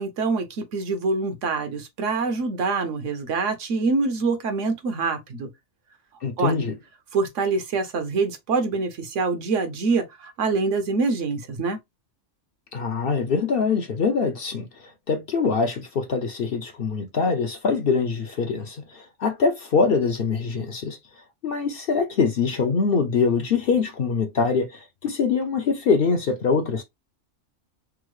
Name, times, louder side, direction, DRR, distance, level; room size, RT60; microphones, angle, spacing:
voice 1, 0.0-5.5 6.4-6.6 7.1-11.8, right 4 dB, 75° right, 1.1 m, -25 dB
voice 2, 6.2-6.7 12.7-21.0 21.4-26.8, left 5 dB, 55° left, 0.7 m, -24 dB
3.5 x 2.0 x 3.1 m
omnidirectional pair, 1.3 m